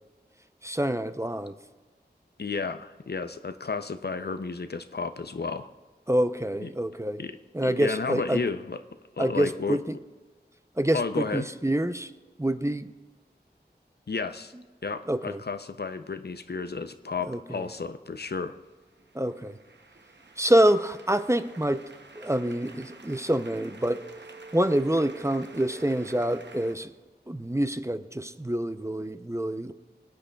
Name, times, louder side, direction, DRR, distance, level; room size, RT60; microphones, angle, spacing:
voice 1, 0.6-1.5 6.1-7.2 7.5-8.4 9.2-9.9 10.8-12.1 12.4-12.9 15.1-15.4 17.3-17.6 19.1-19.6 20.4-21.8 22.1-24.0 24.5-26.9 27.3-29.7, right 1 dB, 15° right, 10 dB, 0.5 m, -26 dB
voice 2, 2.4-5.7 6.6-6.7 7.2-7.4 7.6-8.8 9.2-9.8 10.9-11.5 14.1-14.5 14.8-18.6, left 4 dB, 65° left, 10 dB, 0.5 m, -32 dB
sound 1, 18.6-26.7, right 3 dB, 85° right, 0.7 m, -48 dB
23.0 x 8.7 x 2.3 m, 1.3 s
wide cardioid pair, 40°, 18 cm